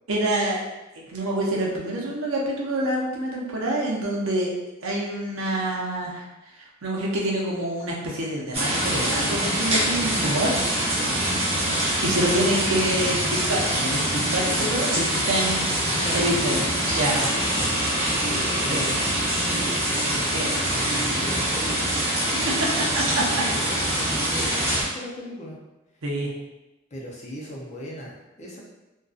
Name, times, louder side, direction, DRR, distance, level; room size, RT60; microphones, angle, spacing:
voice 1, 0.1-0.6 0.9-4.5 4.8-6.2 6.6-10.5 12.0-17.3 17.5-17.7 18.7-18.9 20.3-20.5 22.6-23.4 26.0-26.3, right 1 dB, 80° right, -3 dB, 0.6 m, -27 dB
sound 1, 8.5-24.8, right 1 dB, 30° right, 0.7 m, -24 dB
voice 2, 10.8-11.2 14.8-15.2 15.9-17.4 17.7-17.8 18.1-19.1 19.9-22.0 22.3-22.6 23.5-25.6 26.9-28.6, equal, 35° left, -4 dB, 0.6 m, -38 dB
sound 2, 16.9-21.0 21.3-21.7, left 1 dB, 90° left, 0.8 m, -34 dB
2.6 x 2.2 x 2.4 m, 1.0 s
head